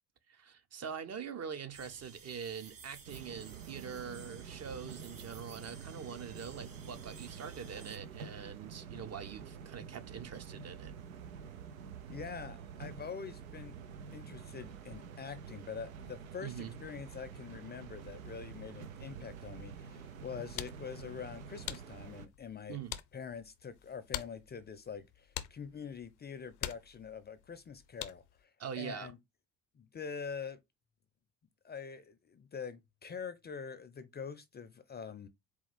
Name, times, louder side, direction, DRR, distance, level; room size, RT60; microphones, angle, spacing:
voice 1, 0.3-10.9 16.4-16.7 22.7-23.0 28.6-29.1, right 7 dB, 40° right, 0.7 m, -44 dB
sound 1, 1.7-8.0, right 5 dB, 55° right, 1.8 m, -55 dB
sound 2, 3.1-22.3, right 6 dB, 85° right, 0.6 m, -48 dB
voice 2, 12.1-13.7 14.1-22.8 23.1-29.2 29.7-30.6 31.6-35.3, left 6 dB, 25° left, 0.5 m, -45 dB
sound 3, 20.1-28.4, left 14 dB, 75° left, 0.6 m, -46 dB
4.2 x 2.3 x 4.1 m
hypercardioid pair, 55°, 41 cm